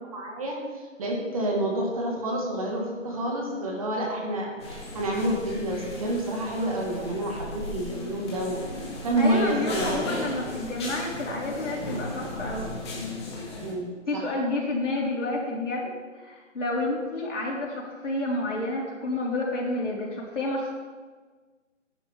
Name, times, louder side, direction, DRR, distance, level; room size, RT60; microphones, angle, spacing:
voice 1, 0.1-10.0 13.6-14.3, right 1 dB, 30° right, -1 dB, 1.8 m, -29 dB
sound 1, 4.6-13.7, left 2 dB, 20° left, 1.8 m, -36 dB
voice 2, 9.2-12.7 14.1-15.9 16.2-20.7, left 2 dB, 65° left, -3 dB, 4.1 m, -29 dB
14.5 x 10.0 x 3.6 m, 1.4 s
hypercardioid pair, 165°, 38 cm